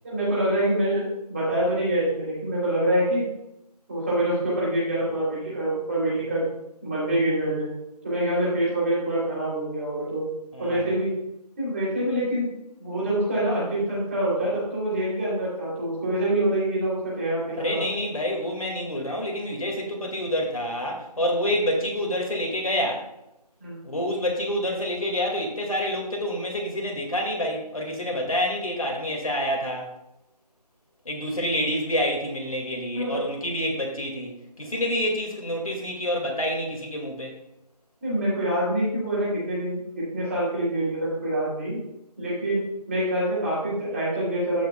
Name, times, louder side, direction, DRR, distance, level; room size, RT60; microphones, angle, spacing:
voice 1, 0.0-3.3 3.9-6.5 6.8-7.7 8.0-10.2 10.6-11.1 11.6-12.5 12.8-17.8 23.6-23.8 32.9-33.2 38.0-41.8 42.2-44.7, right 1 dB, 20° right, -8 dB, 3.0 m, -25 dB
voice 2, 10.5-10.9 17.6-23.1 23.8-29.9 31.1-37.3, equal, 55° left, 1 dB, 2.2 m, -27 dB
15.5 x 5.7 x 2.3 m, 0.87 s
figure-of-eight pair, 170°, 21 cm